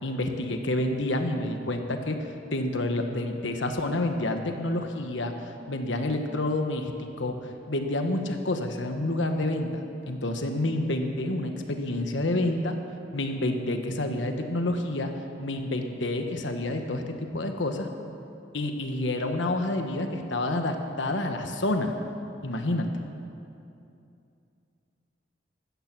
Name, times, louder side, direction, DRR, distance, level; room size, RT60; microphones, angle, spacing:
voice 1, 0.0-9.8 10.1-12.8 13.1-15.1 15.4-17.9 18.5-21.9 22.4-22.9, left 1 dB, 80° left, 5 dB, 1.2 m, -29 dB
15.0 x 14.0 x 6.1 m, 2.6 s
head